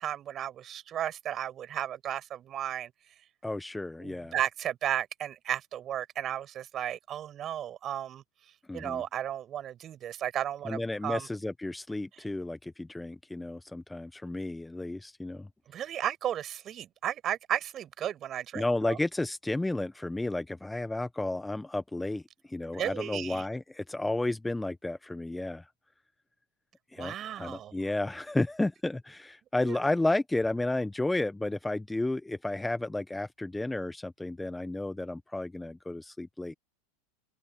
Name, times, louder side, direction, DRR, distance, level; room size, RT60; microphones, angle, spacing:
voice 1, 0.0-2.9 4.0-8.2 8.7-11.3 15.7-19.0 22.7-23.4 27.0-27.7 29.6-29.8, right 10 dB, 35° right, 6.2 m, -34 dB
voice 2, 3.4-4.3 8.7-9.0 10.6-15.5 18.5-25.7 26.9-36.5, left 2 dB, 5° left, 0.9 m, -32 dB
hypercardioid pair, 95°, 0 cm